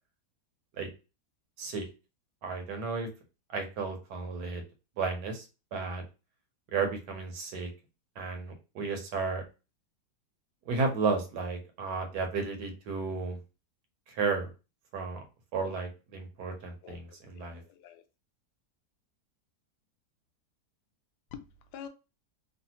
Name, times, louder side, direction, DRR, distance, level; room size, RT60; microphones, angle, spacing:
voice 1, 2.4-3.1 3.5-4.6 5.0-5.4 5.7-6.0 6.7-7.7 8.2-9.4 10.7-13.4 14.1-14.5 14.9-15.2 15.5-17.6, right 4 dB, 80° right, 1.4 m, -33 dB
voice 2, 16.8-18.0 21.3-21.4 21.7-21.9, left 8 dB, 85° left, 1.2 m, -47 dB
3.2 x 2.4 x 2.8 m
omnidirectional pair, 1.7 m